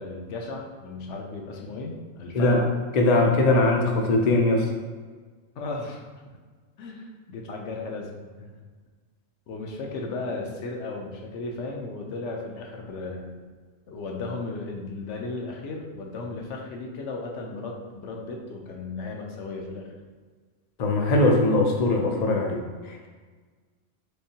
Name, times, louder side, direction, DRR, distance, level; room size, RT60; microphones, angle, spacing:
voice 1, 0.0-2.7 5.6-6.4 6.8-8.5 9.5-13.3 13.9-19.9, left 3 dB, 75° left, 1 dB, 0.9 m, -35 dB
voice 2, 3.0-4.7 20.8-23.1, left 2 dB, 55° left, 1 dB, 0.4 m, -21 dB
3.5 x 3.5 x 2.7 m, 1.5 s
omnidirectional pair, 1.3 m